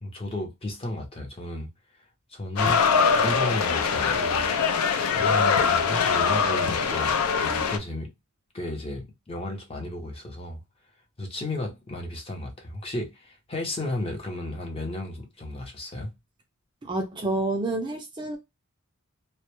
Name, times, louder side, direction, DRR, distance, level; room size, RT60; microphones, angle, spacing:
voice 1, 0.0-1.7 2.3-2.8 3.2-4.5 5.1-7.1 7.4-8.1 8.5-10.6 11.2-16.1, left 1 dB, 25° left, 0.6 m, -33 dB
sound 1, 2.6-7.8, left 5 dB, 85° left, 0.4 m, -23 dB
voice 2, 16.8-18.4, right 2 dB, 20° right, 0.3 m, -28 dB
2.1 x 2.0 x 2.9 m
head